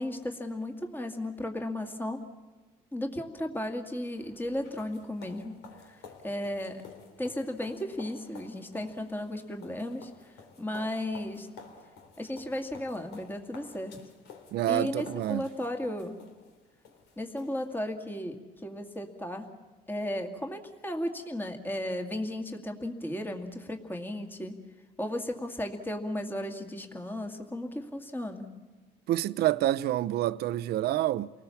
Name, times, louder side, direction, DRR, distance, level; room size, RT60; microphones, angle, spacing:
voice 1, 0.0-2.2 2.9-6.8 7.2-11.5 12.2-14.0 14.7-16.2 17.2-19.5 19.9-24.5 25.0-28.5, left 1 dB, 10° left, 2.1 m, -35 dB
sound 1, 4.2-17.9, left 5 dB, 80° left, 3.1 m, -52 dB
voice 2, 14.5-15.4 29.1-31.3, right 13 dB, 70° right, 0.7 m, -27 dB
29.0 x 19.5 x 7.1 m
cardioid pair, 110°, 17 cm